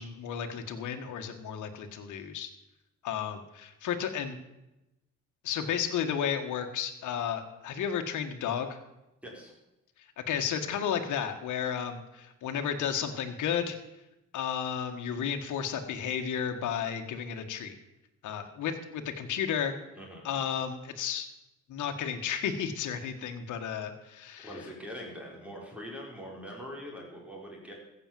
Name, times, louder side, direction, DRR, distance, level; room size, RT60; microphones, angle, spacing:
voice 1, 0.0-2.5 3.0-4.4 5.4-8.8 10.3-13.8 14.3-17.8 18.2-19.7 20.2-21.3 21.7-24.5, left 8 dB, 75° left, 5 dB, 1.6 m, -33 dB
voice 2, 9.2-9.5 20.0-20.2 24.4-27.7, equal, 5° right, -2 dB, 5.3 m, -43 dB
15.0 x 6.7 x 7.6 m, 0.93 s
cardioid pair, 90°, 30 cm